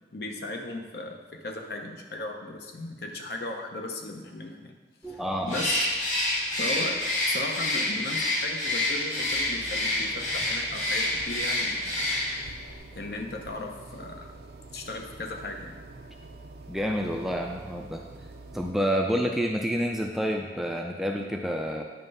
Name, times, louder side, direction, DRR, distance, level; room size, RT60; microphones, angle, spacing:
voice 1, 0.1-4.7 5.1-5.2 5.4-5.9 6.6-12.1 12.8-14.3 14.7-15.7, left 2 dB, 60° left, 3 dB, 0.8 m, -36 dB
voice 2, 5.0-5.6 16.7-18.0 18.5-21.8, equal, ahead, 1 dB, 0.3 m, -28 dB
Bird, 5.5-12.5, left 1 dB, 40° left, 1.4 m, -28 dB
sound 1, 9.2-18.7, right 2 dB, 60° right, 0.5 m, -46 dB
8.9 x 3.3 x 5.4 m, 1.3 s
head